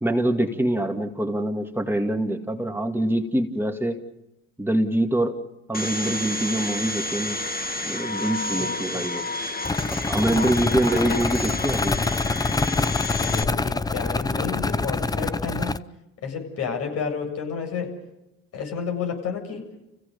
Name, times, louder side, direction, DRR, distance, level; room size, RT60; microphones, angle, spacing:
voice 1, 0.0-4.0 4.6-5.4 5.7-7.4 7.8-9.3 9.9-12.0, right 1 dB, 10° right, 3 dB, 2.1 m, -25 dB
Domestic sounds home sounds, 5.7-13.4, left 2 dB, 30° left, 1.9 m, -30 dB
voice 2, 8.6-9.1 10.3-10.7 13.1-15.8 16.2-17.9 18.5-19.6, left 6 dB, 60° left, 4 dB, 7.7 m, -31 dB
sound 1, 9.6-15.8, left 3 dB, 15° left, 0.7 m, -26 dB
29.0 x 16.5 x 6.8 m, 0.92 s
supercardioid pair, 80°, 29 cm